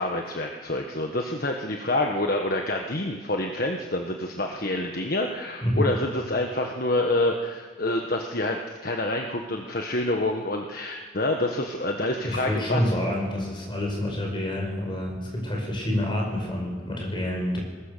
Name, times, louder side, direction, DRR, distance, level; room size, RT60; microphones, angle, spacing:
voice 1, 0.0-12.9, left 1 dB, 45° left, 2 dB, 1.4 m, -27 dB
voice 2, 12.2-17.6, left 1 dB, 25° left, 0 dB, 5.8 m, -28 dB
21.5 x 20.0 x 6.8 m, 1.5 s
head